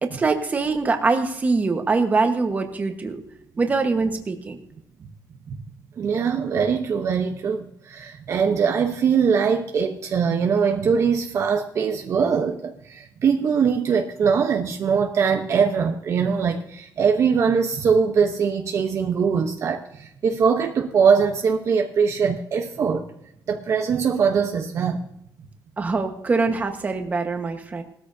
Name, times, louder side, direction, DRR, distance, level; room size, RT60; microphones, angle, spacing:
voice 1, 0.0-3.2 3.6-4.6 25.8-27.8, right 4 dB, 25° right, 5 dB, 1.3 m, -23 dB
voice 2, 6.0-23.0 23.5-25.1, right 6 dB, 45° right, 3 dB, 0.9 m, -22 dB
19.0 x 13.5 x 2.8 m, 0.79 s
cardioid pair, 155°, 7 cm